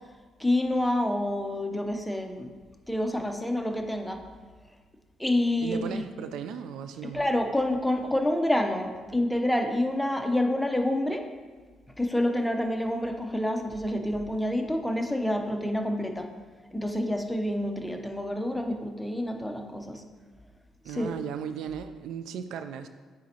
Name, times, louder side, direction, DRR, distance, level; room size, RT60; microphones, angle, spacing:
voice 1, 0.4-2.5 2.9-4.2 5.2-6.0 7.1-11.2 12.0-16.3 16.7-20.0 20.9-21.1, left 1 dB, 5° left, 4 dB, 0.6 m, -28 dB
voice 2, 5.6-7.2 20.8-22.9, right 8 dB, 85° right, 10 dB, 0.3 m, -36 dB
7.5 x 5.1 x 2.8 m, 1.5 s
cardioid pair, 90°, 0 cm